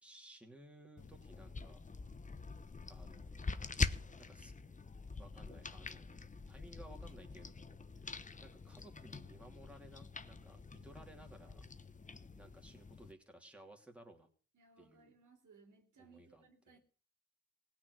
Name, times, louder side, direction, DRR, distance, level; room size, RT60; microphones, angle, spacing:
voice 1, 0.0-1.8 2.9-3.5 4.3-4.5 5.2-6.2 6.5-8.1 8.4-11.6 12.4-14.3 14.8-15.1 16.0-16.8, right 1 dB, 5° right, 2 dB, 2.9 m, -58 dB
sound 1, 1.0-13.1, left 4 dB, 25° left, 1.0 m, -44 dB
voice 2, 14.5-16.8, right 5 dB, 65° right, 4 dB, 3.2 m, -64 dB
17.5 x 6.0 x 9.5 m, 0.42 s
cardioid pair, 75°, 32 cm